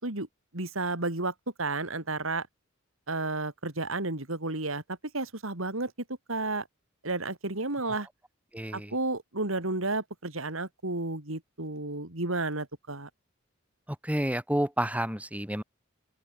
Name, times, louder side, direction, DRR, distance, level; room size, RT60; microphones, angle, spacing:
voice 1, 0.5-2.5 3.1-4.8 5.1-5.9 6.3-6.6 7.0-8.1 8.7-13.1, right 2 dB, 70° right, 3.4 m, -32 dB
voice 2, 8.5-9.0 13.9-15.6, equal, 5° right, 7.4 m, -30 dB
open air
head